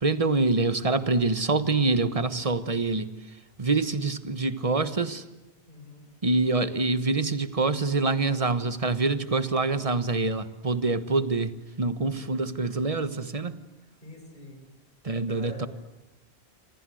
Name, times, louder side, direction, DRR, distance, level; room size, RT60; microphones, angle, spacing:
voice 1, 0.0-3.1 3.6-5.2 6.2-13.6 15.0-15.7, right 3 dB, 30° right, 1.3 m, -25 dB
voice 2, 5.7-6.0 12.0-12.4 14.0-14.6 15.3-15.7, left 1 dB, 40° left, 7.4 m, -45 dB
27.5 x 26.0 x 7.9 m
omnidirectional pair, 1.2 m